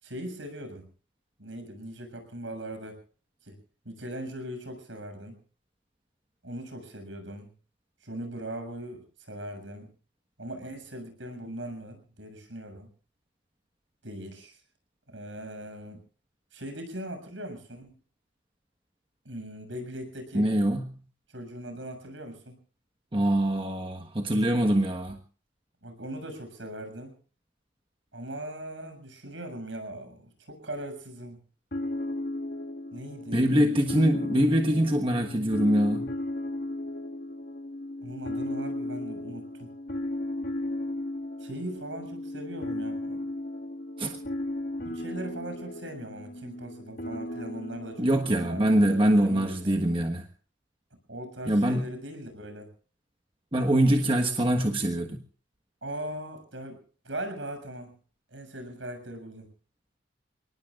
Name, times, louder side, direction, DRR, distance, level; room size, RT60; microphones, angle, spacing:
voice 1, 0.0-0.9 1.4-3.0 3.4-3.6 3.9-5.4 6.4-7.5 8.0-9.9 10.4-12.9 14.0-14.6 15.1-16.0 16.5-18.0 19.3-20.5 21.3-22.6 25.8-27.2 28.1-31.4 32.9-33.8 38.0-39.7 41.4-43.2 44.8-50.1 51.1-52.7 55.8-58.0 58.3-59.5, right 1 dB, 75° right, 6 dB, 7.0 m, -40 dB
voice 2, 20.3-21.0 23.1-25.2 33.3-36.1 44.0-44.2 48.0-50.2 51.5-51.9 53.5-55.2, right 1 dB, 25° right, 3 dB, 1.4 m, -24 dB
sound 1, 31.7-49.2, left 1 dB, 50° left, 1.5 m, -35 dB
29.0 x 19.5 x 2.5 m, 0.40 s
head